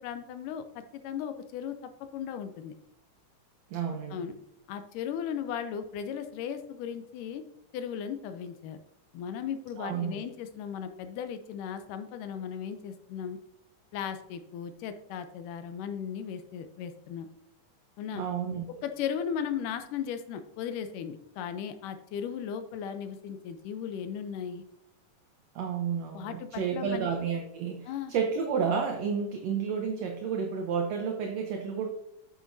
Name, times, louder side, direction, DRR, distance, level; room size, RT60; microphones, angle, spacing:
voice 1, 0.0-2.7 4.1-4.4 4.7-7.4 7.7-8.8 9.1-13.4 13.9-17.3 18.0-18.2 18.8-24.6 26.1-27.1 27.9-28.1, left 8 dB, 80° left, 9 dB, 2.2 m, -36 dB
voice 2, 3.7-4.2 9.8-10.2 18.1-18.6 25.5-31.9, right 6 dB, 70° right, 3 dB, 1.7 m, -31 dB
8.7 x 8.2 x 2.6 m, 0.83 s
omnidirectional pair, 3.7 m